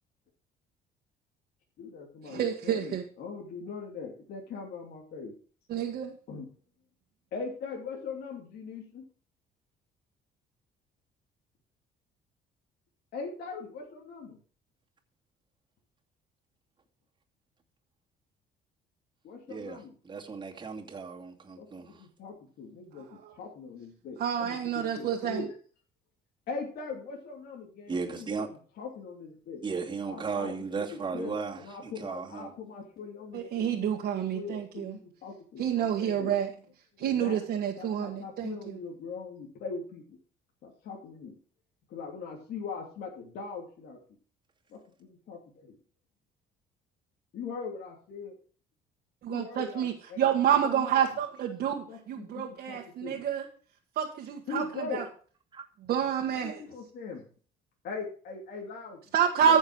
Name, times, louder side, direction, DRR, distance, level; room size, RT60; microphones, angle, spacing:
voice 1, 1.8-5.3 5.8-6.5 7.3-9.1 13.1-14.4 19.2-19.9 21.6-25.5 26.5-29.6 30.1-36.4 37.0-37.4 37.8-40.2 40.6-41.4 41.9-44.0 44.7-45.8 47.3-48.3 49.3-51.0 51.9-53.2 54.5-55.0 56.0-57.2 57.8-59.0, left 4 dB, 70° left, -1 dB, 2.9 m, -41 dB
voice 2, 2.3-3.0 5.7-6.1 24.2-25.4 33.3-34.9 35.6-36.5 37.0-38.8 49.2-53.4 54.0-54.6 54.9-55.0 55.9-56.6 59.1-59.6, right 9 dB, 60° right, 0 dB, 1.6 m, -28 dB
voice 3, 19.5-22.0 27.9-28.5 29.6-32.5 55.5-55.6 59.4-59.6, right 5 dB, 25° right, -2 dB, 2.4 m, -36 dB
14.5 x 6.5 x 4.7 m, 0.43 s
cardioid pair, 110°, 17 cm